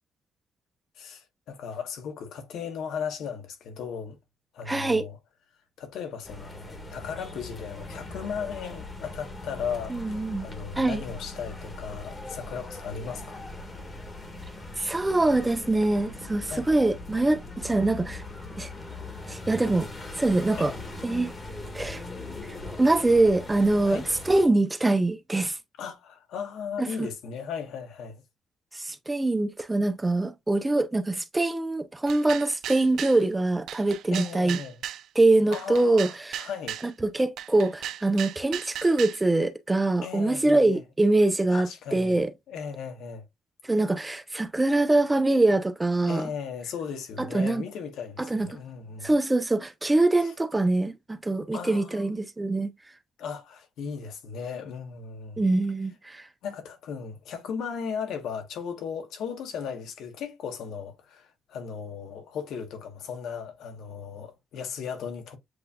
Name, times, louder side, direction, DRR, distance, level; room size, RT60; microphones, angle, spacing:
voice 1, 1.0-4.2 4.5-5.2 5.8-13.4 16.5-16.7 20.5-20.8 23.8-24.1 25.8-28.2 34.1-34.8 35.5-36.8 40.0-40.8 41.5-43.2 46.0-49.1 50.2-50.3 51.5-52.1 53.2-55.4 56.4-65.4, left 6 dB, 80° left, 1.2 m, -36 dB
voice 2, 4.7-5.0 9.9-10.5 10.8-11.0 14.8-18.2 18.6-18.7 19.3-19.9 20.2-20.7 21.0-21.3 21.7-22.0 22.5-25.6 26.8-27.1 28.7-34.6 35.2-36.5 36.8-42.3 43.6-46.3 47.2-47.6 48.2-48.5 49.0-52.7 55.4-56.2, right 2 dB, 15° right, 0.7 m, -24 dB
sound 1, 6.2-24.5, left 2 dB, 30° left, 1.5 m, -40 dB
sound 2, 32.1-33.2 33.7-35.0 35.5-36.9 37.4-39.2, right 11 dB, 75° right, 0.4 m, -36 dB
7.8 x 2.7 x 2.3 m
cardioid pair, 90°, 0 cm